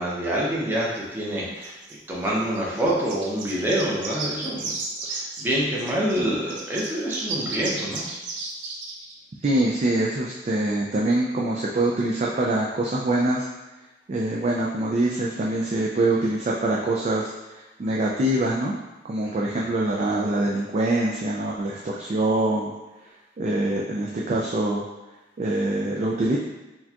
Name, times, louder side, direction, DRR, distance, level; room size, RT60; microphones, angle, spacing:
voice 1, 0.0-1.8 2.1-4.7 5.1-8.0 19.2-19.3, right 1 dB, 10° right, -6 dB, 0.8 m, -26 dB
sound 1, 1.6-6.2 6.5-9.1, right 3 dB, 90° right, 0.6 m, -34 dB
voice 2, 9.4-13.5 14.1-18.7 19.0-22.7 23.4-24.8 25.4-26.4, right 1 dB, 40° right, -3 dB, 0.4 m, -24 dB
4.4 x 2.3 x 2.8 m, 1.1 s
head